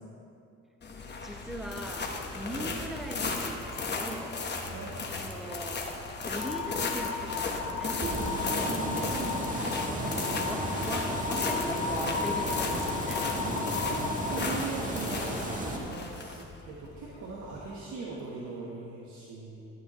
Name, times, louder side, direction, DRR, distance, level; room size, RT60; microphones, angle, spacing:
sound 1, 0.8-17.7, left 3 dB, 35° left, 1.1 m, -36 dB
voice 1, 1.2-4.4 5.1-5.9 6.3-8.1 10.5-13.3, equal, ahead, 2 dB, 0.9 m, -40 dB
voice 2, 4.7-5.0 8.6-10.5 13.4-19.7, right 4 dB, 80° right, -4 dB, 1.2 m, -40 dB
sound 2, 6.4-14.4, left 6 dB, 85° left, 0.8 m, -35 dB
sound 3, 8.0-15.8, right 1 dB, 25° right, 1.4 m, -34 dB
12.5 x 8.8 x 3.0 m, 2.7 s
cardioid pair, 90°, 30 cm